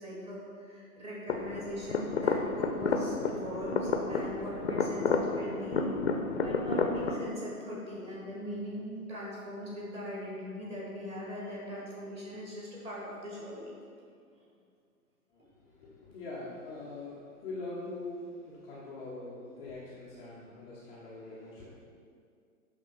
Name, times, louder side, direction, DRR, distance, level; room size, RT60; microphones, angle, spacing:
voice 1, 0.0-5.9 6.4-13.7, equal, 15° right, -5 dB, 1.5 m, -40 dB
sound 1, 1.3-7.1, left 4 dB, 45° left, 0.7 m, -31 dB
voice 2, 15.3-21.6, left 2 dB, 10° left, -9 dB, 0.6 m, -43 dB
10.5 x 3.6 x 5.8 m, 2.2 s
figure-of-eight pair, 125°, 45 cm